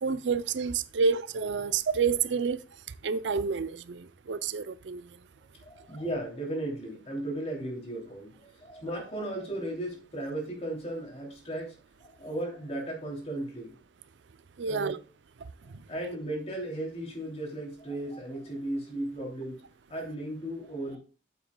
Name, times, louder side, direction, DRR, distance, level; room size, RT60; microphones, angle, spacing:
voice 1, 0.0-2.6 3.0-5.0 14.6-15.0, right 5 dB, 80° right, 0.5 m, -29 dB
voice 2, 5.6-13.7 14.6-14.9 15.9-19.6 19.9-21.0, right 1 dB, 35° left, 3.0 m, -36 dB
8.8 x 8.1 x 2.3 m
head